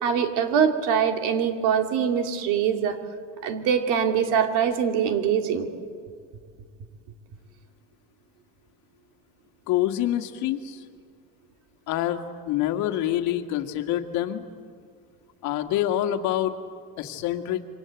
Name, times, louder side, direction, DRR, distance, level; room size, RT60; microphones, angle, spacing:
voice 1, 0.0-3.0 3.4-5.7, right 7 dB, 70° right, 6 dB, 2.7 m, -23 dB
voice 2, 9.7-10.8 11.9-14.4 15.4-16.5 17.0-17.6, left 12 dB, 60° left, 5 dB, 2.0 m, -26 dB
27.5 x 25.0 x 8.3 m, 2.1 s
cardioid pair, 160°, 32 cm